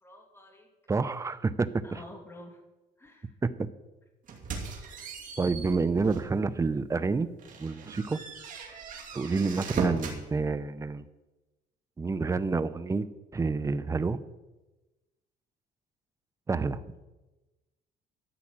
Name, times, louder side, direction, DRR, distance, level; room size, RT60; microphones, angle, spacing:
voice 1, 0.0-0.7 1.2-1.4 1.8-2.6 3.0-3.4 9.1-9.3, left 1 dB, 15° left, 3 dB, 2.5 m, -50 dB
voice 2, 0.9-1.8 3.4-3.5 5.4-7.3 7.6-8.2 9.1-11.0 12.0-13.1 13.3-14.2 16.5-16.8, right 4 dB, 20° right, 15 dB, 0.6 m, -28 dB
sound 1, 4.3-6.4 6.8-7.0 7.4-10.2, right 5 dB, 50° right, 2.6 m, -38 dB
13.0 x 5.8 x 8.7 m, 1.1 s
cardioid pair, 110°, 17 cm